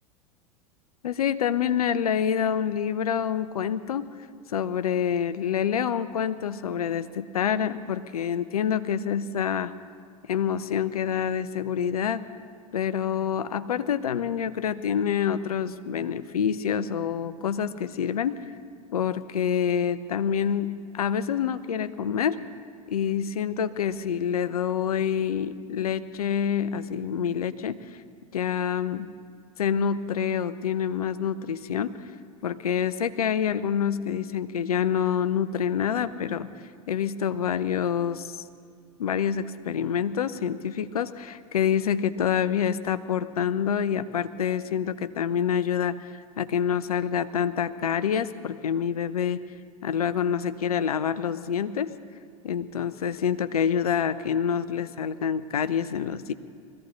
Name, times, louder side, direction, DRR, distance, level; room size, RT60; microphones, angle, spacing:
voice 1, 1.0-4.1 4.5-9.7 10.3-12.2 12.7-18.4 18.9-22.4 22.9-27.8 28.3-29.1 29.6-31.9 32.4-36.5 36.9-38.4 39.0-49.4 49.8-51.9 52.4-56.3, left 8 dB, 70° left, 13 dB, 0.7 m, -27 dB
21.5 x 15.0 x 4.0 m, 2.2 s
figure-of-eight pair, 90°, 20 cm